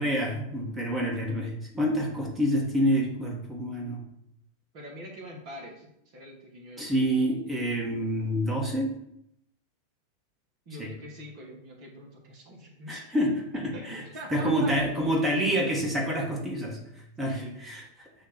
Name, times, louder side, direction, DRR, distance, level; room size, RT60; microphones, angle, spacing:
voice 1, 0.0-4.0 6.8-8.9 10.8-10.9 12.9-14.0 14.3-16.8 17.2-18.1, equal, 15° right, -1 dB, 1.6 m, -27 dB
voice 2, 4.7-6.9 10.7-13.0 13.7-14.7 17.3-17.6, equal, 45° right, 1 dB, 1.7 m, -44 dB
8.7 x 2.9 x 5.9 m, 0.76 s
figure-of-eight pair, 90°, 0 cm